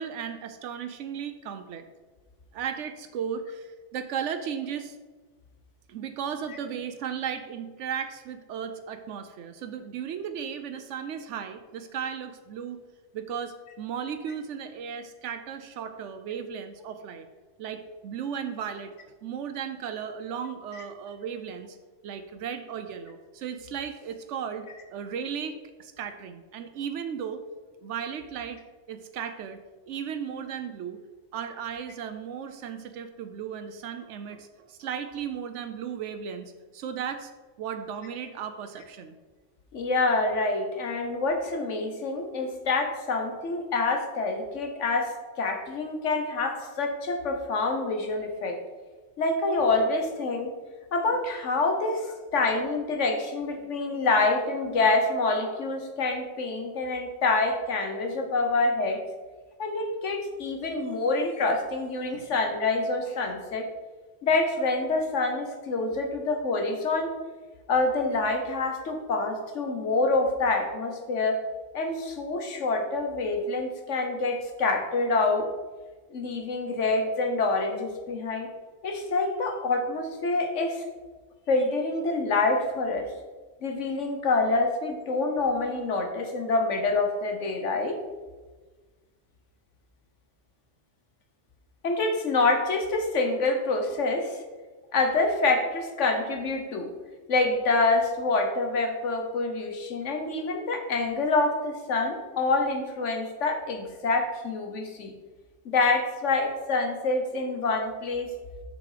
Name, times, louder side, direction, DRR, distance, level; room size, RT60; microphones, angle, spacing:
voice 1, 0.0-1.8 2.5-5.0 5.9-12.8 13.1-17.3 17.6-18.9 19.2-21.8 22.0-24.7 24.9-27.4 27.8-28.6 28.9-29.6 29.9-31.0 31.3-37.3 37.6-39.2, right 7 dB, 85° right, 8 dB, 0.9 m, -35 dB
voice 2, 39.7-48.6 49.2-50.5 50.9-59.0 59.6-63.7 64.2-67.1 67.7-71.4 71.7-75.5 76.1-78.5 78.8-80.8 81.5-83.1 83.6-88.0 91.8-94.4 94.9-96.9 97.3-105.1 105.6-108.3, left 3 dB, 85° left, 4 dB, 1.5 m, -26 dB
6.8 x 6.5 x 5.0 m, 1.3 s
omnidirectional pair, 1.2 m